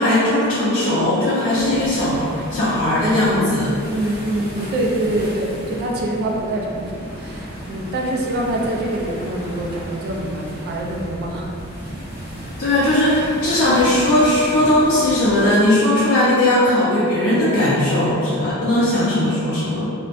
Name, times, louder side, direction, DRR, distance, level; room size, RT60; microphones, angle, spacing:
voice 1, 0.0-3.7 12.6-19.9, left 1 dB, 75° left, -11 dB, 0.5 m, -18 dB
sound 1, 1.6-15.5, equal, 25° right, 0.8 m, -34 dB
voice 2, 3.6-11.5, right 1 dB, 50° right, -1 dB, 0.3 m, -25 dB
2.6 x 2.1 x 2.3 m, 2.4 s
head